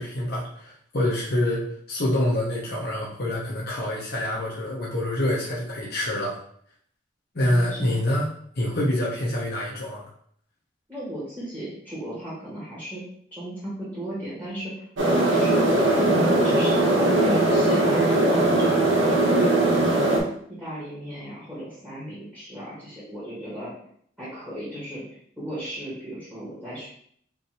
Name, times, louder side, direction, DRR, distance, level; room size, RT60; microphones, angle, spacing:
voice 1, 0.0-1.6 1.9-6.4 7.3-8.3 8.6-10.0, left 1 dB, 55° left, -5 dB, 0.8 m, -26 dB
voice 2, 7.5-8.0 10.9-13.0 13.3-14.7 15.0-20.0 20.5-23.7 24.2-25.0 25.4-26.9, right 1 dB, 10° right, -10 dB, 1.6 m, -35 dB
sound 1, 15.0-20.2, right 1 dB, 80° right, 1.1 m, -20 dB
5.4 x 2.7 x 2.9 m, 0.64 s
head